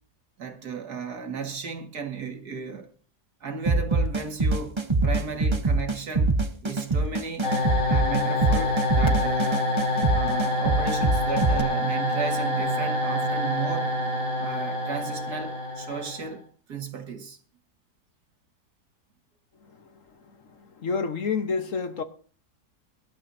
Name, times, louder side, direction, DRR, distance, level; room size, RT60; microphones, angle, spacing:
voice 1, 0.4-2.9 3.4-6.3 6.6-7.5 7.8-9.7 10.1-13.9 14.4-17.4, right 5 dB, 70° right, 2.5 m, -34 dB
sound 1, 3.7-11.6, right 3 dB, 20° right, 0.8 m, -24 dB
sound 2, 7.4-16.3, left 1 dB, 90° left, 4.8 m, -26 dB
voice 2, 20.6-22.0, left 5 dB, 55° left, 1.6 m, -28 dB
24.0 x 12.0 x 2.8 m
omnidirectional pair, 1.8 m